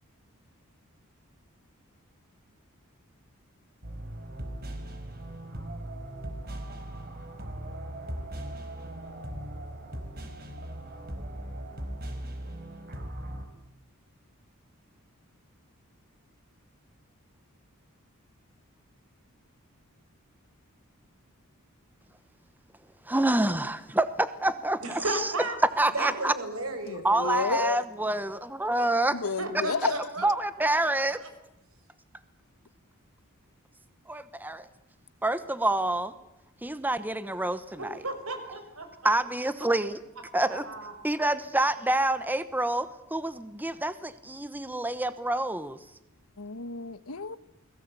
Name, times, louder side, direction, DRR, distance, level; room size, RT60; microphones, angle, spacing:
sound 1, 3.8-13.4, right 1 dB, 45° right, 4.5 m, -39 dB
voice 1, 23.1-25.3 25.8-26.3 27.0-29.2 29.5-29.6 30.2-31.2 34.1-34.7 35.2-36.1 36.6-38.0 39.0-40.0 40.3-40.7 41.0-45.8, right 1 dB, 10° right, 1.0 m, -27 dB
voice 2, 24.8-25.6 25.9-27.7 29.4-30.2 30.9-31.3 37.8-39.1 40.5-40.9, right 2 dB, 80° right, 5.8 m, -35 dB
voice 3, 26.8-27.8 29.1-30.0 46.4-47.4, left 4 dB, 85° left, 1.3 m, -31 dB
30.0 x 21.0 x 8.2 m
head